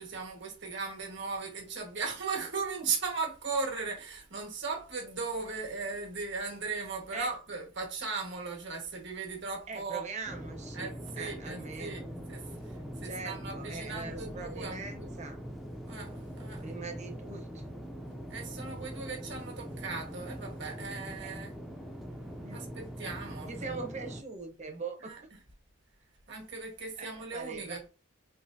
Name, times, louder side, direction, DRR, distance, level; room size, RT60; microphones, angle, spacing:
voice 1, 0.0-10.0 10.7-12.0 12.3-15.1 15.9-16.6 18.3-21.5 22.5-23.8 25.0-25.2 26.3-27.9, right 4 dB, 60° right, 1.5 m, -37 dB
voice 2, 9.7-12.1 13.0-15.4 16.6-17.7 21.2-21.4 22.4-22.6 23.5-25.2 27.0-27.1 27.3-27.8, right 3 dB, 35° right, 0.9 m, -41 dB
sound 1, 10.3-24.2, equal, ahead, 0.5 m, -42 dB
4.8 x 3.0 x 2.7 m
head